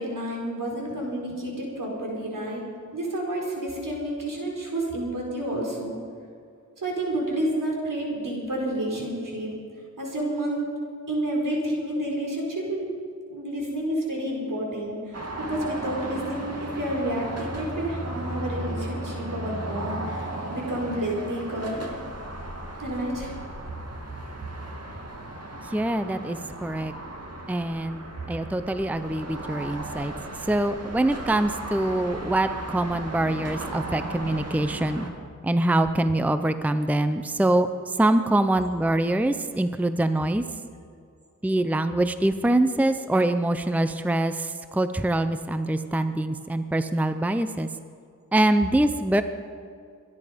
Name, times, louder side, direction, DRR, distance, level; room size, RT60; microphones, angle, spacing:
voice 1, 0.0-2.6 2.9-6.0 6.8-9.5 10.0-10.7 11.1-12.9 13.3-21.8 22.8-23.3, right 1 dB, 75° right, -1 dB, 4.6 m, -30 dB
sound 1, 15.1-35.1, right 1 dB, 50° right, 2.4 m, -36 dB
voice 2, 25.6-26.9 27.5-30.1 30.5-35.1 35.4-40.4 41.4-47.7 48.3-49.2, right 1 dB, 5° right, 10 dB, 0.6 m, -24 dB
25.0 x 11.0 x 5.2 m, 2.4 s
wide cardioid pair, 80°, 32 cm